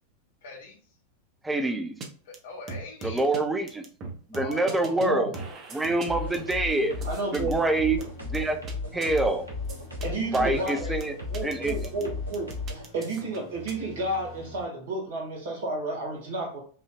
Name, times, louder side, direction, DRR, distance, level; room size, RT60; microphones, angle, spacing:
voice 1, 0.4-0.8 2.3-3.3 4.3-5.8 10.3-11.0, left 4 dB, 55° left, 2 dB, 1.3 m, -42 dB
voice 2, 1.4-2.0 3.0-3.9 4.3-5.3 5.7-7.0 7.3-8.6 8.9-9.5 10.3-11.1 11.4-11.7, right 2 dB, 10° right, 7 dB, 0.6 m, -26 dB
sound 1, 2.0-2.1 2.3-2.4 2.7-3.4 3.7-5.1 5.3-7.5 8.0-8.7 9.0-9.2 9.7-10.1 10.3-10.4 10.7-12.0 12.3-13.7, right 3 dB, 30° right, 0.9 m, -41 dB
voice 3, 5.0-5.3 7.0-7.6 10.0-11.0 11.3-16.6, right 2 dB, 60° right, -1 dB, 2.0 m, -31 dB
sound 2, 6.1-12.9, left 3 dB, 80° right, 1.3 m, -35 dB
sound 3, 6.6-14.7, left 3 dB, 30° left, 1.2 m, -47 dB
5.5 x 2.9 x 2.4 m, 0.43 s
figure-of-eight pair, 90°, 0 cm